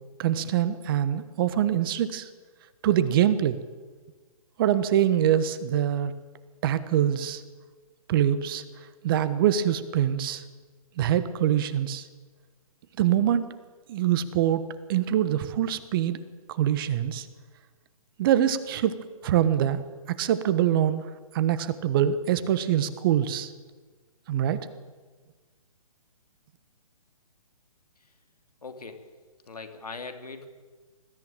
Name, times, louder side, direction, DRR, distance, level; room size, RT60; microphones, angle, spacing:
voice 1, 0.2-2.3 2.8-3.6 4.6-6.1 6.6-7.4 8.1-8.6 9.0-10.4 11.0-12.0 13.0-13.4 13.9-14.6 14.9-16.2 16.5-17.3 18.2-18.9 19.2-19.8 20.1-21.1 21.3-23.5 24.3-24.6, right 10 dB, 35° right, 13 dB, 1.3 m, -24 dB
voice 2, 28.6-29.0 29.5-30.5, left 4 dB, 85° left, 7 dB, 2.9 m, -40 dB
21.0 x 14.0 x 9.0 m, 1.4 s
hypercardioid pair, 140°, 19 cm